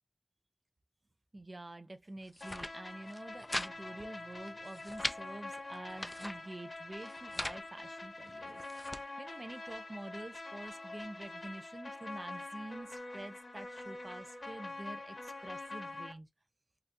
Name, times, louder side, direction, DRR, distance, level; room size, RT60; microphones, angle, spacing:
voice 1, 1.3-16.3, right 1 dB, 45° right, 0.5 m, -48 dB
sound 1, 2.2-2.7 3.1-3.7 4.0-4.1 4.5-5.2 5.7-6.4 7.0-7.6 8.3-9.0, left 1 dB, 25° left, 0.3 m, -40 dB
sound 2, 2.4-16.1, left 2 dB, 60° left, 1.0 m, -45 dB
2.8 x 2.5 x 3.3 m
wide cardioid pair, 65°, 0 cm